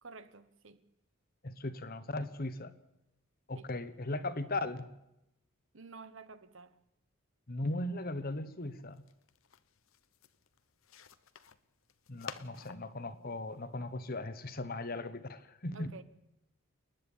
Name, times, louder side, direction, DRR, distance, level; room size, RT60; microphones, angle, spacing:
voice 1, 0.0-0.8 3.5-3.7 5.7-6.8 15.7-16.0, right 4 dB, 60° right, 1.1 m, -51 dB
voice 2, 1.4-2.7 3.5-4.9 7.5-9.0 12.1-15.9, left 2 dB, 45° left, 1.1 m, -38 dB
sound 1, 8.6-14.2, left 6 dB, 70° left, 0.9 m, -52 dB
29.0 x 10.5 x 8.7 m
head